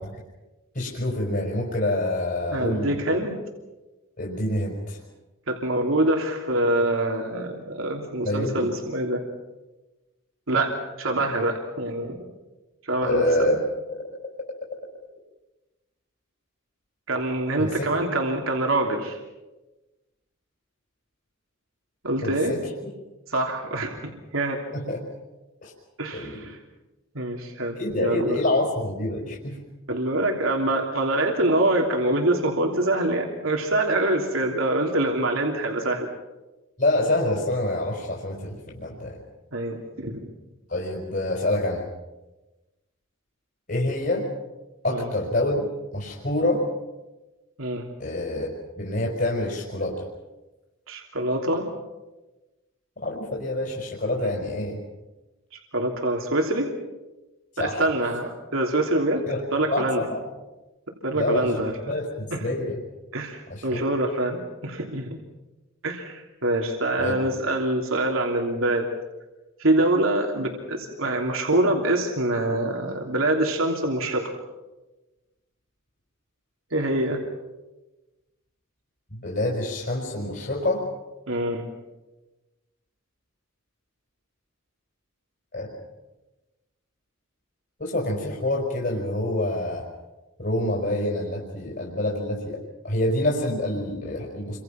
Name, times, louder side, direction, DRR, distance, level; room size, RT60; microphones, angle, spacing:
voice 1, 0.7-3.0 4.2-5.0 8.2-8.7 13.0-13.6 13.9-14.1 17.6-17.9 22.2-22.7 24.7-25.0 25.6-25.7 26.1-26.4 27.8-29.6 36.8-39.2 40.7-41.8 43.7-44.3 44.8-46.7 48.0-48.5 48.8-50.1 53.0-54.8 57.6-57.9 59.3-59.4 59.7-60.2 61.1-61.5 61.9-62.8 63.5-63.8 67.0-67.1 79.1-80.9 85.5-85.7 87.8-89.9 90.4-94.6, left 1 dB, 45° left, -2 dB, 5.2 m, -26 dB
voice 2, 2.5-3.4 5.5-9.2 10.5-12.2 12.8-13.5 17.1-19.2 22.0-22.5 23.3-24.6 26.0-26.6 27.1-28.4 29.9-36.1 39.5-40.3 44.9-45.1 47.6-47.8 50.9-51.6 54.2-54.3 55.5-56.7 57.6-59.2 59.5-60.0 61.0-61.7 62.3-62.4 63.1-65.2 65.8-68.9 69.6-74.3 76.7-77.2 81.3-81.6, right 1 dB, 80° right, 1 dB, 3.2 m, -25 dB
29.5 x 25.5 x 6.0 m, 1.1 s
head